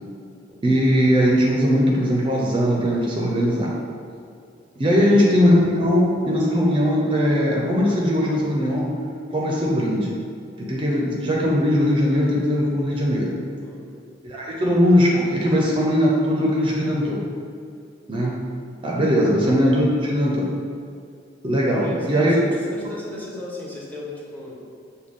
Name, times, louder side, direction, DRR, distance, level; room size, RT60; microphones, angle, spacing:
voice 1, 0.6-3.7 4.8-8.9 9.3-10.1 10.6-13.3 14.2-17.2 18.1-18.3 18.8-20.5 21.4-22.4, equal, 30° right, -3 dB, 0.5 m, -20 dB
voice 2, 5.0-5.3 13.6-13.9 21.7-24.6, left 1 dB, 10° left, -5 dB, 0.7 m, -35 dB
6.2 x 2.2 x 3.6 m, 2.4 s
head